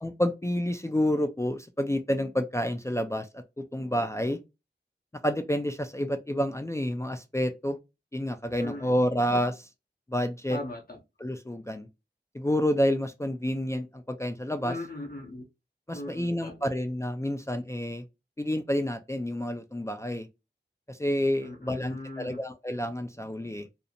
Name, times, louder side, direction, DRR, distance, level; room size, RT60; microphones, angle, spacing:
voice 1, 0.0-4.4 5.2-7.8 8.1-9.7 10.1-10.6 11.2-11.9 12.3-14.8 15.9-18.0 18.4-20.3 20.9-23.7, equal, 15° left, 0.3 m, -29 dB
voice 2, 8.6-8.9 10.5-11.0 14.6-15.5 15.9-16.7 21.4-22.4, left 2 dB, 50° left, 0.6 m, -39 dB
2.5 x 2.0 x 2.7 m
wide cardioid pair, 40°, 19 cm